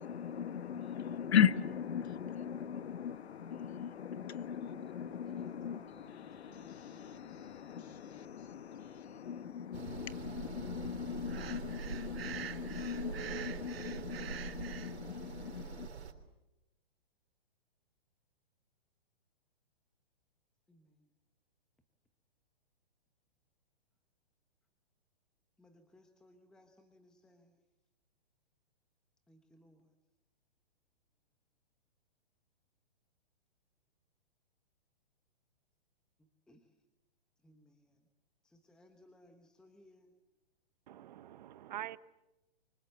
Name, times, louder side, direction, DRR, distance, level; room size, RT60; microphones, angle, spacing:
voice 1, 0.0-15.9, left 8 dB, 80° left, 1.3 m, -37 dB
voice 2, 4.7-8.5 20.7-21.1 25.6-27.6 29.3-29.9 36.2-36.8 37.4-38.1 38.4-40.1, left 1 dB, ahead, 1.0 m, -64 dB
sound 1, 9.7-16.1, right 6 dB, 85° right, 3.6 m, -44 dB
Breathing, 11.3-14.9, right 9 dB, 65° right, 1.4 m, -46 dB
voice 3, 40.9-42.0, right 13 dB, 45° right, 1.0 m, -45 dB
28.0 x 24.5 x 7.9 m
hypercardioid pair, 160°, 32 cm